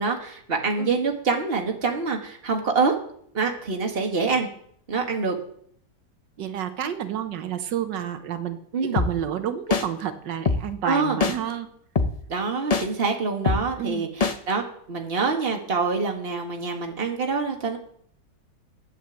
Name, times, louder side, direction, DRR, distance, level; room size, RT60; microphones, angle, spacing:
voice 1, 0.0-2.9 3.3-4.5 4.9-5.3 8.7-9.0 10.8-11.2 12.3-14.1 14.5-14.6 14.9-17.8, right 4 dB, 35° right, 2 dB, 1.9 m, -25 dB
voice 2, 6.4-11.7 13.8-14.1, right 9 dB, 90° right, 9 dB, 1.6 m, -30 dB
sound 1, 9.0-9.1 9.7-9.8 10.5-10.6 11.2-11.3 12.0-12.1 12.7-12.8 13.5-13.6 14.2-14.3, left 4 dB, 50° left, 0.4 m, -21 dB
10.5 x 8.6 x 7.4 m, 0.64 s
omnidirectional pair, 1.9 m